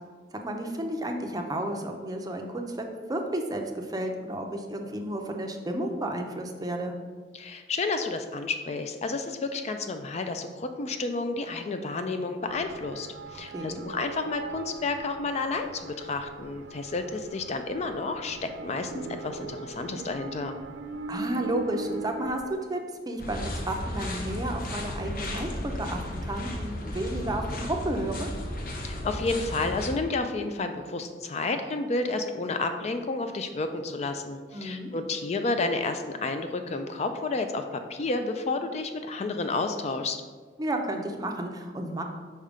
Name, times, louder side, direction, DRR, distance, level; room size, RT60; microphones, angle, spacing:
voice 1, 0.4-7.0 13.5-13.8 21.1-22.8 23.1-28.3 34.5-34.9 40.6-42.0, right 1 dB, 20° right, 3 dB, 0.5 m, -32 dB
voice 2, 7.3-20.6 28.7-40.2, left 3 dB, 35° left, 7 dB, 0.3 m, -31 dB
sound 1, 12.5-22.6, right 3 dB, 85° right, 0.3 m, -40 dB
sound 2, 23.2-29.9, left 1 dB, 55° left, 0.8 m, -34 dB
5.4 x 3.5 x 5.0 m, 1.5 s
head